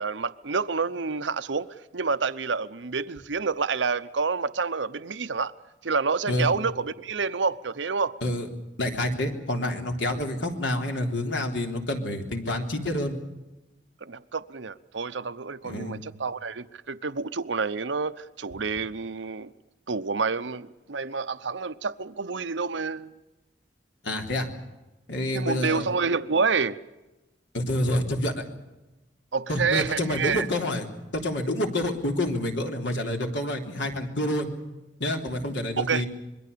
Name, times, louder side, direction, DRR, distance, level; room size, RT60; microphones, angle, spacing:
voice 1, 0.0-1.7 1.9-5.5 5.8-8.1 14.0-19.5 19.9-23.1 25.3-26.8 29.3-30.5 35.8-36.0, right 4 dB, 85° right, 0.9 m, -28 dB
voice 2, 8.8-13.2 15.6-16.0 24.0-24.5 25.1-25.9 27.5-28.4 29.5-30.9 31.1-34.5 35.0-36.1, left 1 dB, 80° left, 3.6 m, -28 dB
26.5 x 22.0 x 6.9 m
head